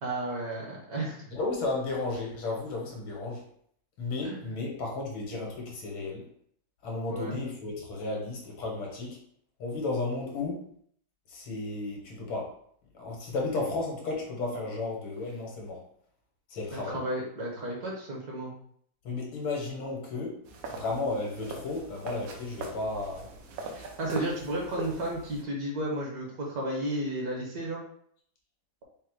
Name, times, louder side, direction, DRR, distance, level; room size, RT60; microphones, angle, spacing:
voice 1, 0.0-1.4 4.2-4.5 7.1-7.4 16.7-18.5 23.7-27.8, right 1 dB, 55° right, -1 dB, 1.3 m, -33 dB
voice 2, 1.3-3.4 4.0-6.2 6.8-9.2 9.6-10.6 11.3-12.5 12.9-15.8 16.5-17.0 19.0-20.4 20.7-23.3, left 3 dB, 85° left, -1 dB, 2.0 m, -33 dB
sound 1, 20.5-25.4, right 3 dB, 75° right, 1.5 m, -41 dB
5.0 x 2.0 x 4.6 m, 0.64 s
omnidirectional pair, 2.1 m